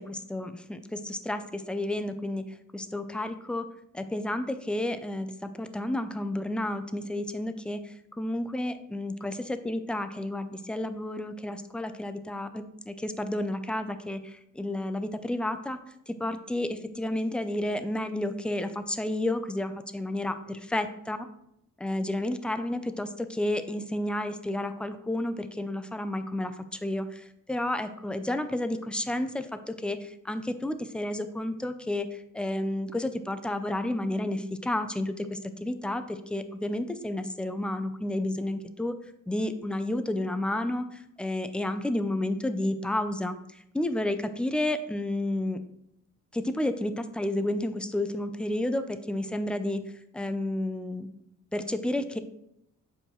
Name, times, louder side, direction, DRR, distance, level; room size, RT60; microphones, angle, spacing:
voice 1, 0.0-2.5 2.7-3.7 3.9-15.8 16.1-21.2 21.8-26.5 26.8-38.9 39.3-40.9 41.2-43.4 43.7-45.6 46.3-49.8 50.1-51.1 51.5-52.2, left 1 dB, 5° left, 9 dB, 0.4 m, -31 dB
7.5 x 4.8 x 3.0 m, 0.77 s
wide cardioid pair, 145°, 31 cm